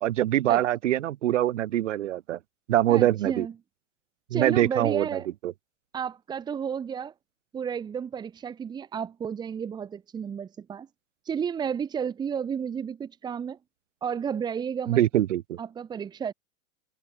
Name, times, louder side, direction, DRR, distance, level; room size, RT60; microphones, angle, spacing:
voice 1, 0.0-2.4 2.7-3.5 4.3-5.5 14.9-15.6, right 13 dB, 60° right, 1.9 m, -24 dB
voice 2, 2.9-3.5 4.3-5.3 5.9-7.1 7.5-10.9 11.2-13.6 14.0-15.0 15.6-16.3, right 7 dB, 10° right, 2.7 m, -32 dB
supercardioid pair, 175°, 42 cm